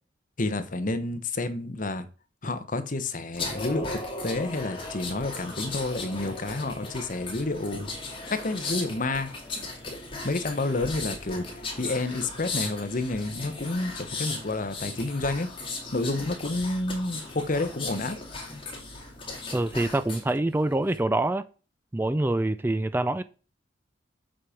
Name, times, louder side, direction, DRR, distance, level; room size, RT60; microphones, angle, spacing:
voice 1, 0.4-2.1 2.4-7.9 8.4-9.3 10.2-11.4 11.8-15.5 15.9-18.2, left 2 dB, 45° left, 1.0 m, -29 dB
sound 1, 3.3-20.3 20.7-21.0, left 3 dB, 30° left, 2.5 m, -37 dB
voice 2, 19.5-21.5 21.9-23.2, right 2 dB, 10° right, 0.3 m, -25 dB
7.6 x 5.0 x 5.8 m
head